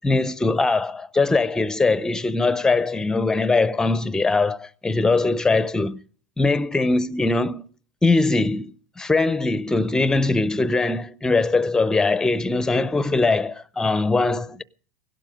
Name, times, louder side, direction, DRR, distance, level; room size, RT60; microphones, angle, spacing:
voice 1, 0.0-6.0 6.4-7.6 8.0-14.6, left 3 dB, 10° left, 0.6 m, -21 dB
17.5 x 12.0 x 5.1 m
supercardioid pair, 130°, 8 cm